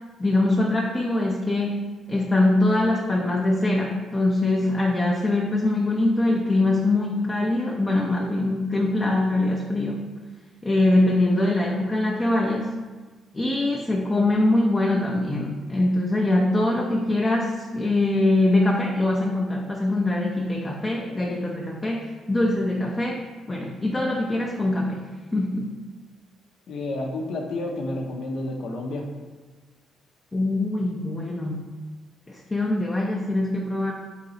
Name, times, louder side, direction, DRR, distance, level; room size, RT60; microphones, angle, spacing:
voice 1, 0.2-10.1 10.6-12.8 13.3-25.0 25.3-25.7 30.3-31.7 32.3-33.9, left 2 dB, 20° left, 0 dB, 0.5 m, -23 dB
voice 2, 26.7-29.1, left 2 dB, 70° left, 2 dB, 0.6 m, -30 dB
3.9 x 2.9 x 4.0 m, 1.3 s
cardioid pair, 90°, 0 cm